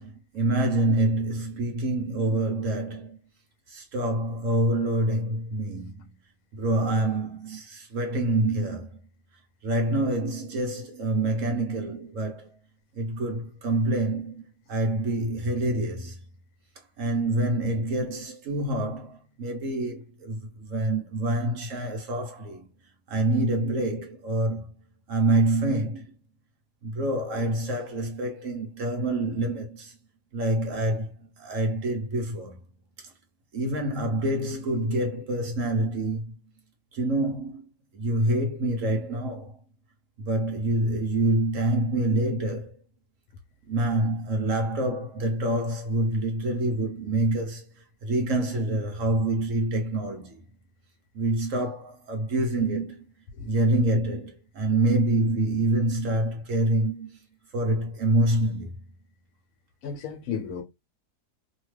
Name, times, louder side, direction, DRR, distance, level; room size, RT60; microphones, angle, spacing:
voice 1, 0.0-3.2 3.7-6.1 6.5-9.0 9.6-12.5 13.0-16.2 17.0-22.7 23.1-24.7 25.1-26.1 26.8-30.0 30.3-31.1 31.4-32.6 33.5-36.3 36.9-37.6 37.9-39.5 40.2-42.8 43.7-47.6 48.0-50.4 51.1-53.1 53.5-57.2 57.5-58.7, right 1 dB, 60° right, 1.0 m, -26 dB
voice 2, 59.8-60.6, left 6 dB, 70° left, 1.1 m, -33 dB
2.8 x 2.3 x 3.1 m
omnidirectional pair, 1.7 m